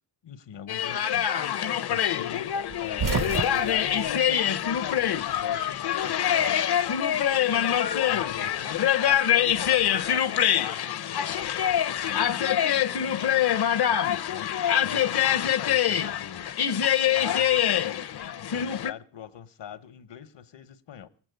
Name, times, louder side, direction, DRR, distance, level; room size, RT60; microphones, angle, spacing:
voice 1, 0.2-6.7 8.1-16.5 17.1-21.1, left 9 dB, 80° left, 1.1 m, -43 dB
sound 1, 0.7-18.9, left 10 dB, 60° left, 0.7 m, -25 dB
sound 2, 2.7-5.2 5.5-6.6 7.8-9.2, right 7 dB, 50° right, 0.7 m, -33 dB
19.5 x 8.0 x 7.9 m
wide cardioid pair, 115°, 43 cm